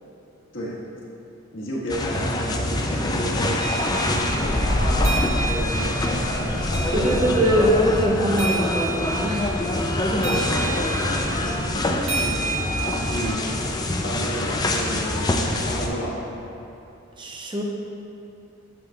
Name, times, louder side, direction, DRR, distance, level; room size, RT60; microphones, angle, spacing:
voice 1, 1.5-7.7 9.9-15.2 15.6-16.2, equal, 60° left, -6 dB, 1.5 m, -31 dB
sound 1, 1.9-15.9, left 1 dB, 20° left, 0.4 m, -24 dB
sound 2, 3.6-13.3, right 4 dB, 65° right, 1.3 m, -32 dB
voice 2, 6.9-9.5 17.2-17.6, equal, 20° right, 0 dB, 0.6 m, -23 dB
8.6 x 7.6 x 2.4 m, 2.9 s
head